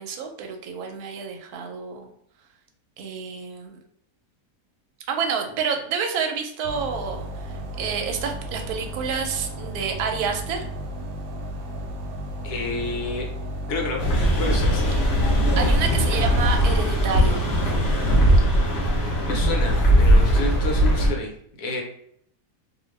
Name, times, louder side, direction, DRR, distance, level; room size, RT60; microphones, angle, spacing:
voice 1, 0.0-2.1 3.0-3.8 5.1-10.7 15.6-17.5, right 6 dB, 75° right, 4 dB, 1.0 m, -29 dB
sound 1, 6.6-18.2, equal, 90° right, 1.2 m, -33 dB
voice 2, 12.4-13.3 13.7-14.9 19.2-21.3 21.6-21.8, left 2 dB, 70° left, 0 dB, 1.2 m, -30 dB
sound 2, 14.0-21.1, equal, 50° left, 0.9 m, -19 dB
2.8 x 2.4 x 3.2 m, 0.68 s
omnidirectional pair, 1.8 m